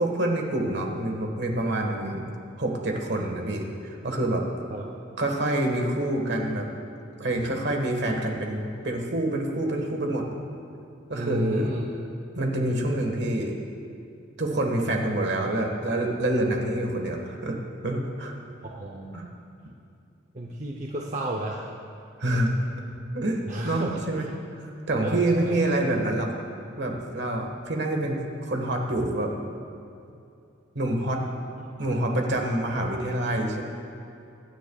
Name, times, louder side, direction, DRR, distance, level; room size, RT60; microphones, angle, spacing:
voice 1, 0.0-2.3 2.6-4.7 5.2-6.7 7.2-10.2 11.1-11.7 12.3-13.6 14.4-17.6 17.8-18.3 19.1-19.3 22.2-22.5 23.1-24.3 24.6-26.3 26.8-29.3 30.7-31.2 31.8-33.6, right 1 dB, 60° right, 2 dB, 1.5 m, -27 dB
voice 2, 11.1-11.8 18.6-19.1 20.3-21.7 23.5-24.3 25.0-25.6 31.6-31.7, right 1 dB, 40° right, -1 dB, 0.7 m, -32 dB
23.0 x 9.9 x 2.4 m, 2.6 s
head